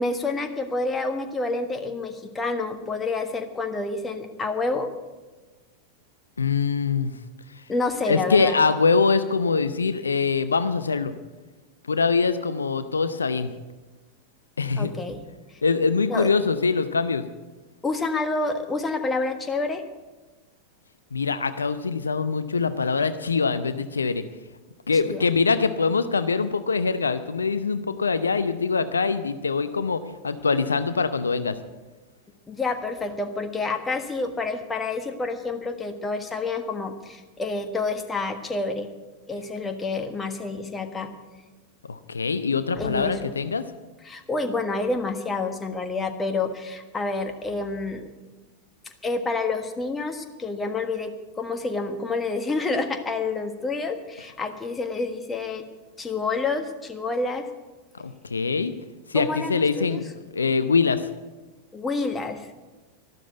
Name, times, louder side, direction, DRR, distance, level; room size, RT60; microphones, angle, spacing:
voice 1, 0.0-4.9 7.7-8.6 14.8-15.2 16.1-16.3 17.8-19.8 25.0-25.2 32.5-38.9 39.3-41.1 42.7-43.3 44.0-48.1 49.0-55.6 56.0-57.5 59.1-60.0 61.7-62.5, left 3 dB, 15° left, 7 dB, 1.4 m, -28 dB
voice 2, 6.4-7.1 8.1-11.1 11.9-13.5 14.6-14.9 15.6-17.2 21.1-24.2 24.9-31.6 41.9-43.7 58.0-58.7 59.1-60.1 60.3-61.1, left 4 dB, 75° left, 12 dB, 0.6 m, -23 dB
12.5 x 12.5 x 8.0 m, 1.2 s
figure-of-eight pair, 90°, 0 cm